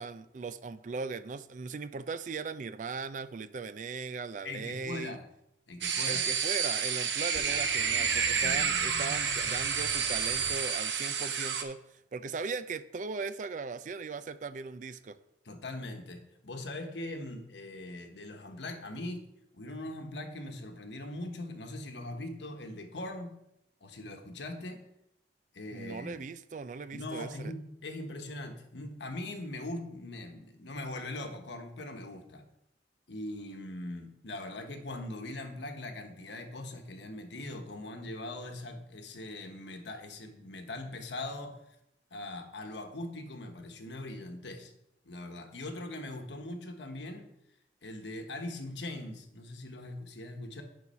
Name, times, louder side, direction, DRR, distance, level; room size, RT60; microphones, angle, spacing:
voice 1, 0.0-5.2 6.1-11.8 12.1-15.2 25.7-27.5, right 4 dB, 45° right, 14 dB, 0.4 m, -38 dB
voice 2, 4.4-5.2 5.7-6.3 8.4-8.7 15.4-19.2 19.5-23.4 23.8-24.8 25.5-26.2 26.9-32.4 33.1-41.6 42.1-44.7 45.0-47.3 47.8-50.6, left 2 dB, 80° left, 5 dB, 1.2 m, -41 dB
sound 1, 5.8-11.6, right 6 dB, 85° right, 0.8 m, -30 dB
sound 2, 7.3-10.6, equal, 10° right, 2.6 m, -46 dB
9.4 x 4.1 x 5.6 m, 0.81 s
head